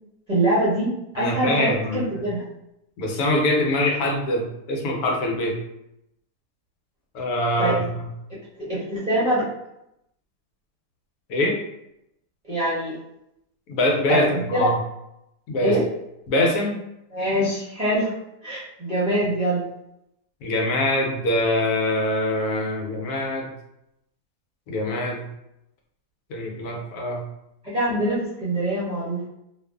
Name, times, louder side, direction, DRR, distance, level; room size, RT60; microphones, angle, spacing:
voice 1, 0.3-2.4 7.6-7.8 8.6-9.4 12.5-12.9 14.1-14.7 15.6-15.8 17.1-18.1 18.4-19.6 27.6-29.3, right 1 dB, 35° right, -10 dB, 0.6 m, -24 dB
voice 2, 1.2-2.0 3.0-5.6 7.1-8.1 11.3-11.5 13.7-14.8 15.5-15.8 16.3-16.8 20.4-23.5 24.7-25.3 26.3-27.3, left 1 dB, 80° left, 0 dB, 1.1 m, -24 dB
2.5 x 2.4 x 2.2 m, 0.83 s
omnidirectional pair, 1.6 m